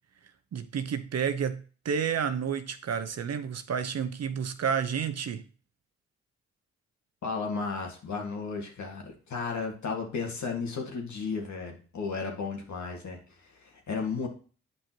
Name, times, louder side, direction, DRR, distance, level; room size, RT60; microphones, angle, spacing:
voice 1, 0.5-5.5, right 7 dB, 55° right, 0.8 m, -30 dB
voice 2, 7.2-14.3, left 4 dB, 65° left, 1.8 m, -34 dB
8.6 x 5.3 x 2.9 m
supercardioid pair, 45°, 31 cm